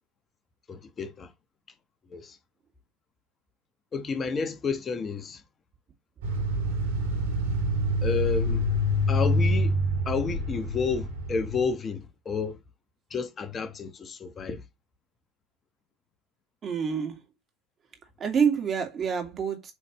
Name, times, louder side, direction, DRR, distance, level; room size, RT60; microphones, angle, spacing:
voice 1, 0.7-1.3 2.1-2.4 3.9-5.4 8.0-8.7 9.1-9.8 10.0-12.6 13.1-14.6, left 5 dB, 30° left, 1.2 m, -31 dB
sound 1, 6.2-11.7, equal, 75° right, 3.6 m, -26 dB
voice 2, 16.6-17.2 18.2-19.7, right 6 dB, 35° right, 2.7 m, -27 dB
8.2 x 4.4 x 3.1 m
hypercardioid pair, 80°, 0 cm